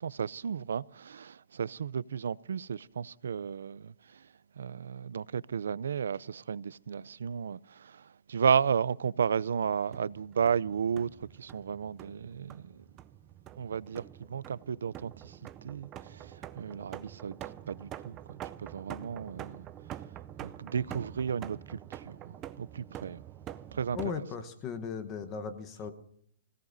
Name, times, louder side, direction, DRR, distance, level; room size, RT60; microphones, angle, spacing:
voice 1, 0.0-4.2 4.6-12.8 13.6-15.4 15.6-17.3 17.7-18.2 18.6-19.7 20.4-23.2 23.7-24.2, right 7 dB, 75° right, 0.5 m, -33 dB
sound 1, 9.7-24.1, right 11 dB, 20° right, 0.5 m, -46 dB
voice 2, 23.9-25.9, left 6 dB, 20° left, 1.1 m, -37 dB
25.0 x 17.0 x 2.7 m
hypercardioid pair, 165°, 0 cm